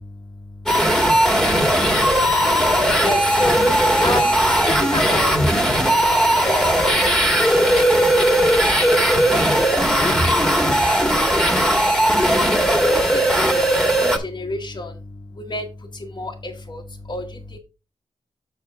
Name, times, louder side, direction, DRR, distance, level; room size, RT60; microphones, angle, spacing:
voice 1, 0.1-9.2 9.5-11.9 12.2-17.6, left 2 dB, 40° left, -1 dB, 1.4 m, -33 dB
sound 1, 0.7-14.2, right 1 dB, 5° left, 1.7 m, -17 dB
7.8 x 6.4 x 3.5 m, 0.29 s
wide cardioid pair, 100°, 12 cm